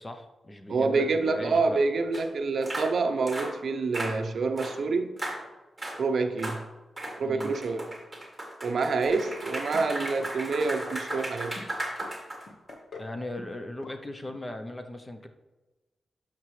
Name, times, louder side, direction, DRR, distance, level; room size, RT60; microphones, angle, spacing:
voice 1, 0.0-1.8 7.2-7.6 13.0-15.3, left 1 dB, 15° left, 7 dB, 0.6 m, -38 dB
voice 2, 0.7-5.1 6.0-6.6 7.2-7.9 8.6-11.6, right 4 dB, 55° right, 6 dB, 0.6 m, -27 dB
sound 1, 2.1-2.2 2.6-2.9 3.3-3.5 3.9-4.2 4.6-4.8 5.2-5.4 5.8-6.0 6.4-6.6 7.0-12.7, right 1 dB, 10° right, 1.5 m, -36 dB
sound 2, 9.1-9.5 9.7-10.3 10.6-11.3 11.6-12.1 12.5-13.1 13.4-13.6 13.8-13.9 14.3-14.4, left 3 dB, 50° left, 1.0 m, -43 dB
11.5 x 5.9 x 3.2 m, 1.1 s
wide cardioid pair, 170°, 0 cm